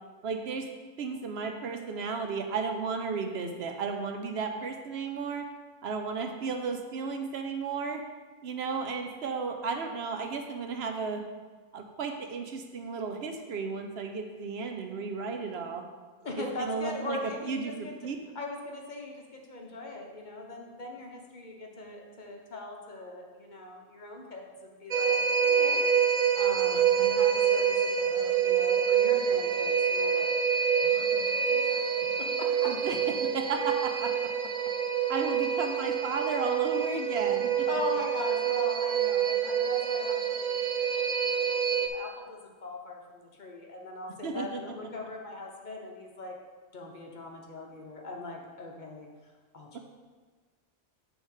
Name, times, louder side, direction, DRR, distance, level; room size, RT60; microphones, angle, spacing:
voice 1, 0.2-0.7 1.0-5.4 5.8-8.0 8.4-11.2 11.7-15.8 16.4-17.2 17.5-18.2 26.7-27.1 32.7-34.3 35.1-37.7 44.2-44.6 49.7-49.8, right 5 dB, 75° right, 5 dB, 1.0 m, -34 dB
voice 2, 16.2-17.9 18.3-30.3 30.8-31.9 37.7-46.4 46.7-49.8, left 2 dB, 45° left, 1 dB, 1.0 m, -41 dB
sound 1, 24.9-41.9, right 7 dB, 55° right, 0.4 m, -27 dB
7.2 x 3.5 x 6.4 m, 1.4 s
omnidirectional pair, 1.1 m